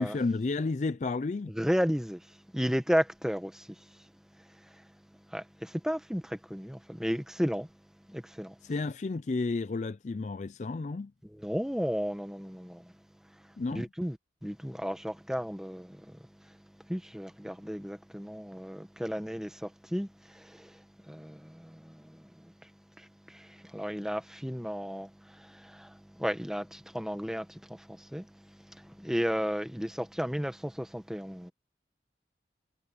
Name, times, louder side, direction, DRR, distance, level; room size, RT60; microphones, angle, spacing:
voice 1, 0.0-1.5 8.6-11.1 13.6-13.9, left 3 dB, 40° left, 0.4 m, -31 dB
voice 2, 1.5-4.1 4.3-4.9 5.3-7.7 8.1-8.6 11.2-12.9 13.7-14.2 14.4-16.6 16.8-22.7 23.0-31.5, equal, 5° right, 1.3 m, -34 dB
head